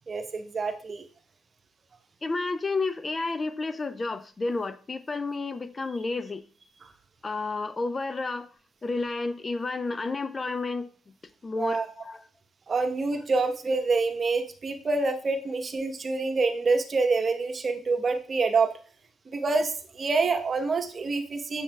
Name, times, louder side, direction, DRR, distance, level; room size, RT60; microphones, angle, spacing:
voice 1, 0.1-1.0 11.5-11.9 12.7-18.7 19.3-21.6, right 3 dB, 45° right, 1.1 m, -26 dB
voice 2, 2.2-6.4 7.2-8.5 8.8-10.9 11.4-12.2, left 3 dB, 35° left, 0.5 m, -31 dB
7.1 x 6.9 x 2.3 m
hypercardioid pair, 50°, 0 cm